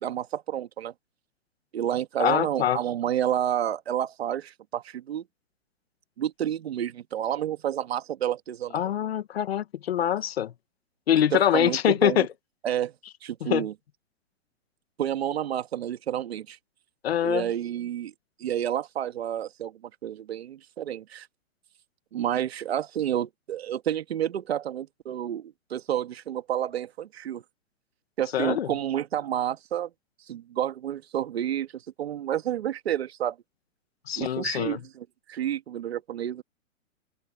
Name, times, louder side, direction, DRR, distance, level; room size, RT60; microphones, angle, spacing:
voice 1, 0.0-0.9 1.7-5.2 6.2-8.9 11.3-12.3 12.6-12.9 13.2-13.7 15.0-16.6 17.2-18.1 18.4-19.7 20.0-21.3 22.1-27.4 28.2-29.9 30.3-33.4 34.2-36.4, right 10 dB, 50° right, 2.1 m, -30 dB
voice 2, 2.2-2.8 8.7-10.5 11.1-12.3 13.4-13.7 17.0-17.5 28.3-28.7 34.1-34.8, left 10 dB, 50° left, 1.5 m, -24 dB
open air
hypercardioid pair, 170°, 40 cm